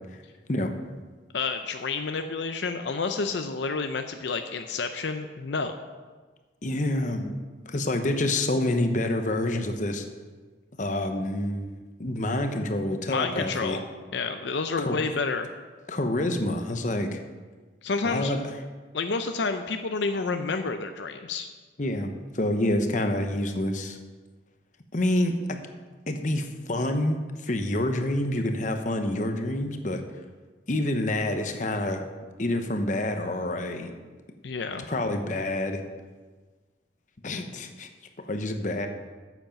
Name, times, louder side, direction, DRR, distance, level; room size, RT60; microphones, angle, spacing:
voice 1, 1.3-5.7 13.1-13.8 14.1-15.5 17.8-18.3 18.9-21.5 34.4-34.9, left 4 dB, 75° left, 7 dB, 0.6 m, -29 dB
voice 2, 6.6-7.3 7.6-10.0 10.8-13.8 14.8-15.0 15.9-17.2 18.0-18.4 21.8-22.1 22.3-24.0 24.9-25.6 26.1-30.0 30.7-32.0 32.4-33.9 34.9-35.8 37.2-37.9 38.2-38.9, left 1 dB, 45° left, 6 dB, 0.9 m, -27 dB
8.9 x 8.2 x 5.8 m, 1.4 s
head